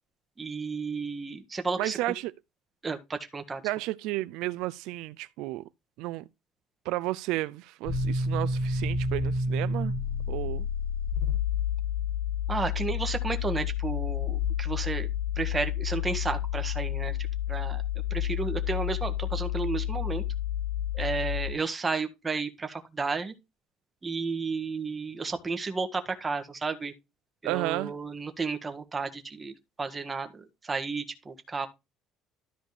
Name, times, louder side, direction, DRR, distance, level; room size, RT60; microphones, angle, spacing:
voice 1, 0.4-2.0 2.8-3.6 12.5-15.1 15.3-17.2 17.5-17.8 18.1-20.2 20.9-23.3 24.0-26.9 27.4-31.7, right 4 dB, 20° right, 1.6 m, -32 dB
voice 2, 1.8-2.3 3.6-5.6 6.0-6.2 6.8-9.9 10.3-10.7 27.4-27.9, right 18 dB, 75° right, 0.5 m, -32 dB
sound 1, 7.8-21.5, left 7 dB, 35° left, 2.5 m, -30 dB
13.0 x 5.1 x 3.3 m
cardioid pair, 140°, 0 cm